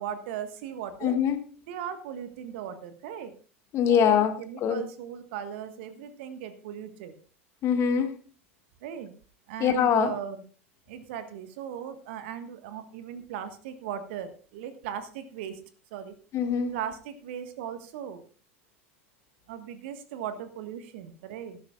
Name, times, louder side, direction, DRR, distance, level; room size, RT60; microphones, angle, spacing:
voice 1, 0.0-1.2 1.7-3.3 3.9-7.1 8.8-9.1 9.5-10.4 10.9-15.6 15.9-16.2 16.7-18.2 19.5-21.6, right 9 dB, 60° right, 10 dB, 1.4 m, -38 dB
voice 2, 1.0-1.4 3.7-4.8 7.6-8.2 9.6-10.1 16.3-16.7, left 8 dB, 40° left, 7 dB, 1.8 m, -23 dB
17.0 x 12.5 x 2.4 m, 0.40 s
figure-of-eight pair, 80°, 7 cm